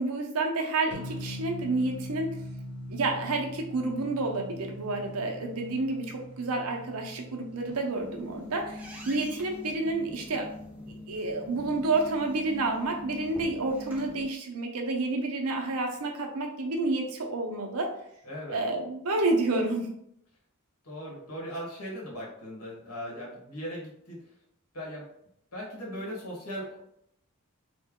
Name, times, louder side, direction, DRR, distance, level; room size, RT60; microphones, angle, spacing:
voice 1, 0.0-2.4 2.9-10.5 11.1-17.9 18.5-19.9, right 2 dB, 75° right, 2 dB, 0.6 m, -29 dB
sound 1, 0.9-7.8, left 1 dB, 70° left, 1.0 m, -42 dB
sound 2, 7.7-14.2, left 1 dB, 5° right, 0.5 m, -43 dB
voice 2, 18.2-18.6 20.8-24.2 24.7-25.1 25.5-26.8, equal, 90° left, -3 dB, 1.4 m, -38 dB
3.2 x 2.2 x 3.6 m, 0.74 s
head